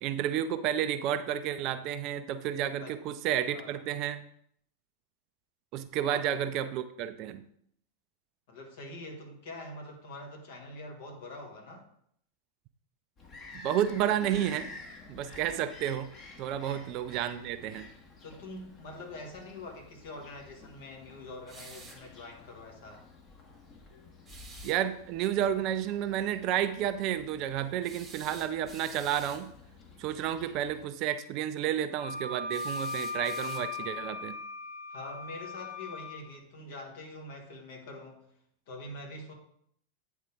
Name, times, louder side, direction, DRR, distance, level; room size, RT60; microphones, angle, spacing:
voice 1, 0.0-4.2 5.7-7.4 13.5-14.7 15.1-16.1 16.4-17.9 24.6-29.5 30.0-34.3, right 10 dB, 40° right, 11 dB, 0.4 m, -31 dB
voice 2, 3.3-3.8 6.1-6.3 8.5-11.9 16.6-16.8 18.2-23.1 34.9-38.3 38.7-39.3, left 2 dB, 50° left, 2 dB, 1.7 m, -45 dB
Bird vocalization bird call bird song, 13.2-30.8, left 3 dB, 30° left, 1.5 m, -51 dB
sound 1, 21.5-22.1 24.3-24.8 27.8-29.5 32.5-33.9, right 4 dB, 15° right, 1.0 m, -49 dB
Wind instrument woodwind instrument, 31.9-36.2, left 3 dB, 5° left, 1.7 m, -38 dB
8.9 x 3.6 x 4.8 m, 0.68 s
figure-of-eight pair, 90°, 0 cm